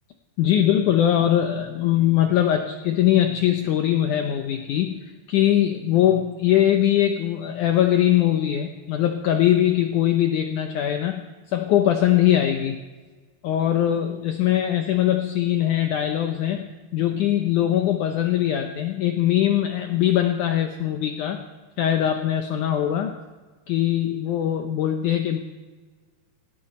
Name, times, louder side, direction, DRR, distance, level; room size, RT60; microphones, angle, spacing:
voice 1, 0.4-11.2 11.5-12.8 13.4-21.4 21.8-23.2 23.7-25.4, left 11 dB, 80° left, 5 dB, 1.8 m, -21 dB
18.5 x 17.0 x 4.3 m, 1.3 s
omnidirectional pair, 4.7 m